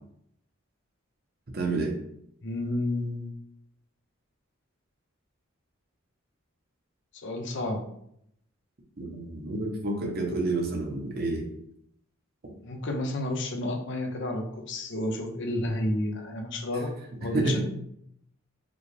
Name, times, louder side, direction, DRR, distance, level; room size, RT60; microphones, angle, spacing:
voice 1, 1.5-1.9 9.0-11.4 17.2-17.6, right 2 dB, 50° right, 1 dB, 0.9 m, -29 dB
voice 2, 2.4-3.3 7.2-7.8 12.6-16.9 17.2-17.6, left 1 dB, 65° left, 2 dB, 0.7 m, -31 dB
4.9 x 2.4 x 3.3 m, 0.73 s
head